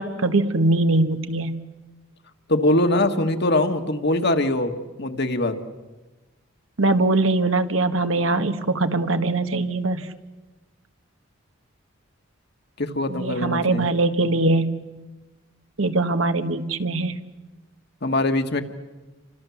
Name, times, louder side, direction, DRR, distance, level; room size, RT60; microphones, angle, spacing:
voice 1, 0.0-1.6 6.8-10.1 13.1-14.8 15.8-17.2, right 2 dB, 85° right, 9 dB, 1.5 m, -22 dB
voice 2, 2.5-5.6 12.8-13.9 18.0-18.6, left 1 dB, 55° left, 6 dB, 1.7 m, -22 dB
30.0 x 25.5 x 7.2 m, 1.2 s
head